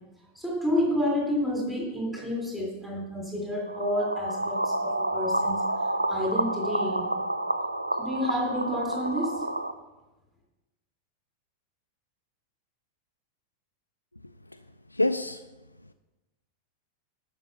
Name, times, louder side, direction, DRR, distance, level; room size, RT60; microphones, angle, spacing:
voice 1, 0.3-5.6 6.1-7.1 8.0-9.3, left 1 dB, ahead, -3 dB, 3.2 m, -29 dB
sound 1, 3.7-9.7, right 1 dB, 85° right, 0.5 m, -29 dB
voice 2, 14.2-14.6 14.9-15.5 15.8-15.9, left 2 dB, 85° left, 7 dB, 0.4 m, -29 dB
11.5 x 6.1 x 6.9 m, 1.1 s
figure-of-eight pair, 90°, 0 cm